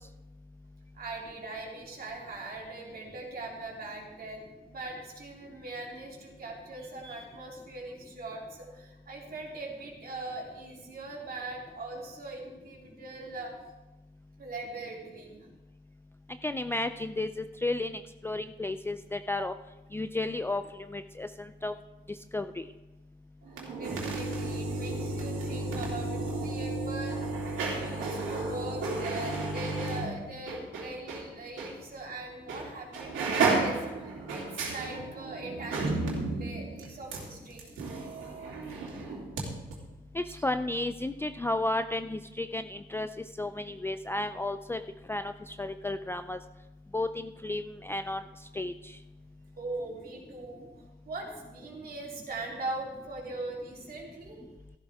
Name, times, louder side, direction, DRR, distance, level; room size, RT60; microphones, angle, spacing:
voice 1, 0.9-13.5 14.4-15.4 23.5-37.7 38.7-38.8 40.3-40.4 49.6-54.4, right 2 dB, 50° right, -1 dB, 3.3 m, -41 dB
voice 2, 16.4-19.5 19.9-21.7 22.3-22.7 40.1-43.1 43.4-44.8 45.1-46.4 46.9-48.2 48.5-49.0, left 2 dB, 10° left, 10 dB, 0.4 m, -33 dB
sound 1, 23.5-31.2 31.6-31.7 32.5-32.7 32.9-39.4 39.7-39.8, right 3 dB, 85° right, 3.1 m, -33 dB
13.5 x 12.0 x 3.5 m, 1.1 s
cardioid pair, 90°, 20 cm